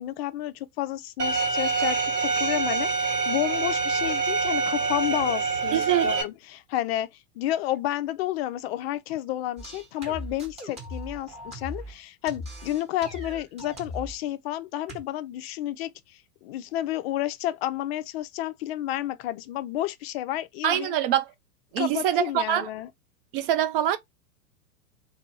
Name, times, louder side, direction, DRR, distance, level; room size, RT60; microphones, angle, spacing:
voice 1, 0.0-7.1 7.4-21.0 21.8-22.9, left 13 dB, 45° left, 0.4 m, -31 dB
Bowed string instrument, 1.2-6.2, right 4 dB, 80° right, 1.4 m, -26 dB
voice 2, 5.7-6.1 20.6-21.3 21.7-22.7 23.3-24.0, right 11 dB, 40° right, 0.4 m, -24 dB
sound 1, 9.6-12.0 12.3-14.2 14.9-15.0, equal, 15° right, 0.9 m, -39 dB
2.5 x 2.3 x 2.8 m
hypercardioid pair, 100°, 47 cm